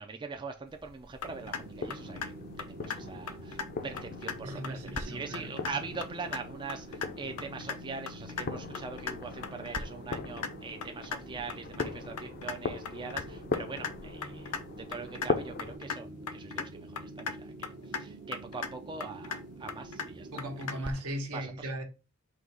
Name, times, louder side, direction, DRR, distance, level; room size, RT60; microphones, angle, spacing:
voice 1, 0.0-20.3 20.7-20.9 21.3-21.8, right 4 dB, 20° right, 0.4 m, -42 dB
sound 1, 0.7-15.8, left 4 dB, 45° left, 0.5 m, -40 dB
sound 2, 1.2-1.6 1.9-2.3 2.6-3.0 3.3-3.7 4.0-4.4 4.6-5.1 5.3-5.7 6.0-6.4 6.7-7.1 7.4-7.8 8.1-8.4 8.7-9.1 9.4-9.8 10.1-10.5 10.8-11.2 11.5-11.9 12.2-12.6 12.9-13.2 13.5-13.9 14.2-14.6 14.9-15.3 15.6-16.0 16.3-16.7 17.0-17.4 17.6-18.0 18.3-18.7 19.0-19.4 19.7-20.1 20.4-20.8, left 6 dB, 90° left, 0.7 m, -36 dB
sound 3, 1.2-20.8, right 1 dB, 45° right, 0.7 m, -47 dB
voice 2, 4.4-5.5 20.3-21.8, equal, 75° right, 1.1 m, -37 dB
3.9 x 2.8 x 4.6 m
head